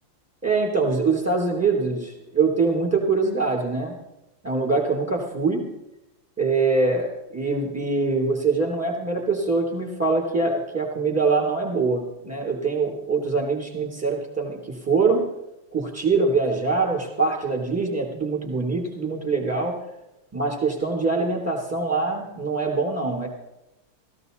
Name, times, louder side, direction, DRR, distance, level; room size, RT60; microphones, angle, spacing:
voice 1, 0.4-3.9 4.4-5.6 6.4-15.2 15.7-19.8 20.3-23.3, right 4 dB, 5° right, -1 dB, 3.5 m, -23 dB
16.5 x 15.5 x 4.1 m, 0.91 s
omnidirectional pair, 2.1 m